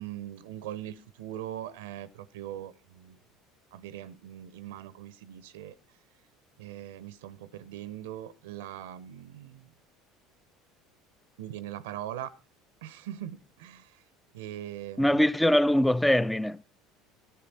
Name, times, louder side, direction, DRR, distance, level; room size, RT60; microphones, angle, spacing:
voice 1, 0.0-3.2 3.7-5.7 6.6-9.7 11.4-12.3 12.8-14.0 14.3-15.3, right 12 dB, 75° right, 0.7 m, -41 dB
voice 2, 15.0-16.6, left 1 dB, 5° left, 0.5 m, -23 dB
14.0 x 9.6 x 4.2 m
hypercardioid pair, 70°, 0 cm